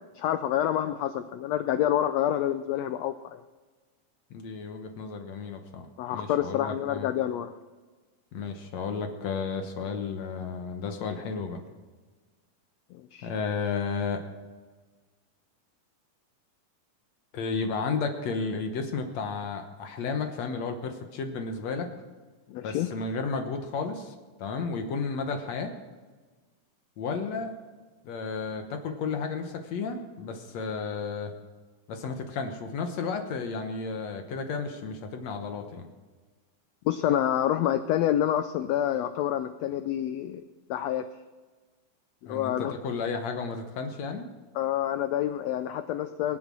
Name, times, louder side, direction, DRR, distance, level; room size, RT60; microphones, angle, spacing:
voice 1, 0.1-3.4 6.0-7.5 12.9-13.3 22.5-22.9 36.8-40.4 40.7-41.0 42.2-42.7 44.5-46.4, left 11 dB, 90° left, 11 dB, 1.5 m, -27 dB
voice 2, 4.3-7.1 8.3-11.6 13.2-14.2 17.3-21.9 22.6-24.1 24.4-25.7 27.0-27.5 28.0-31.3 31.9-35.9 42.3-44.3, left 4 dB, 65° left, 6 dB, 2.1 m, -33 dB
23.0 x 8.0 x 6.2 m, 1.4 s
omnidirectional pair, 3.7 m